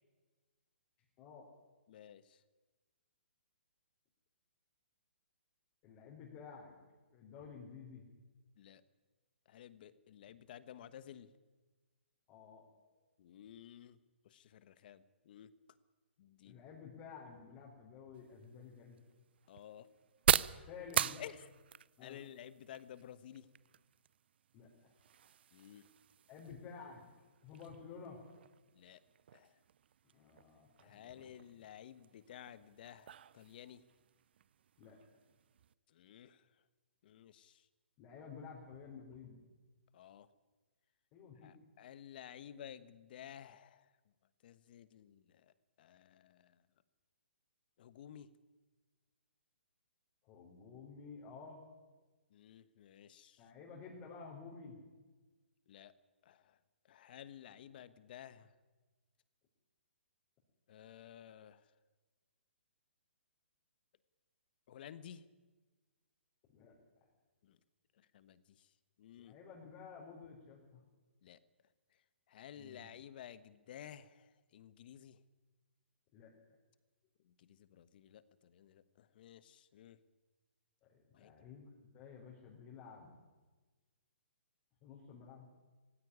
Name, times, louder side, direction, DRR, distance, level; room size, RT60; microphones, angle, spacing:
voice 1, 1.2-1.5 5.8-6.7 7.1-8.0 12.3-12.6 16.4-19.0 20.7-21.2 22.0-22.2 24.5-24.9 26.3-27.0 27.4-28.2 30.1-31.3 34.8-35.0 38.0-39.4 41.1-41.5 50.2-51.6 53.4-54.8 57.5-57.6 66.5-66.8 69.2-70.8 72.5-72.9 76.1-76.3 80.9-81.7 81.9-83.1 84.8-85.4, left 5 dB, 30° left, -3 dB, 4.6 m, -52 dB
voice 2, 1.9-2.4 8.6-8.8 9.5-11.3 13.2-14.0 14.2-15.5 16.2-16.6 19.5-19.9 21.2-21.4 22.0-23.4 25.5-25.9 28.7-29.0 29.3-29.5 30.8-33.8 35.9-36.4 37.0-37.6 39.9-40.3 41.4-43.8 44.4-45.2 45.8-46.5 47.8-48.3 52.3-53.4 55.7-55.9 56.2-56.4 56.9-58.5 60.7-61.6 64.7-65.2 67.5-67.6 68.1-68.4 69.0-69.3 71.2-71.4 72.3-74.3 74.5-75.2 77.4-80.0 81.1-81.3, left 10 dB, 50° left, 15 dB, 1.3 m, -53 dB
sound 1, 18.1-35.7, right 9 dB, 60° right, 0.6 m, -42 dB
17.5 x 16.0 x 10.0 m, 1.3 s
hypercardioid pair, 145°, 6 cm